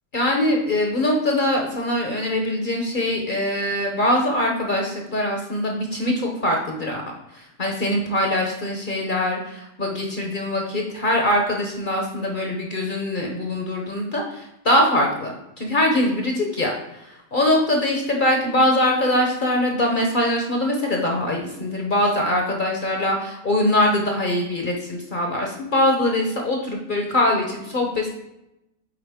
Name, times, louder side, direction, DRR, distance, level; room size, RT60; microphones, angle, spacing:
voice 1, 0.1-7.0 7.3-28.1, left 1 dB, 50° left, 1 dB, 0.6 m, -22 dB
8.7 x 4.0 x 3.5 m, 0.88 s
omnidirectional pair, 1.9 m